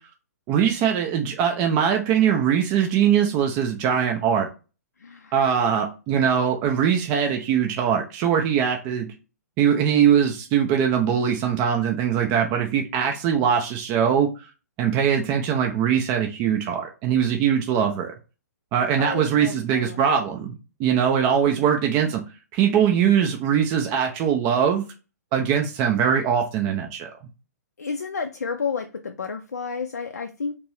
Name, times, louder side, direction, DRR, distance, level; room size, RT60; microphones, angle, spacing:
voice 1, 0.5-4.5 5.3-9.1 9.6-14.3 14.8-18.1 18.7-22.2 22.5-24.8 25.3-27.1, right 8 dB, 25° right, 0.4 m, -21 dB
voice 2, 5.0-5.4 19.0-20.0 27.8-30.6, left 5 dB, 70° left, 0.4 m, -31 dB
2.9 x 2.5 x 3.1 m
figure-of-eight pair, 120°, 9 cm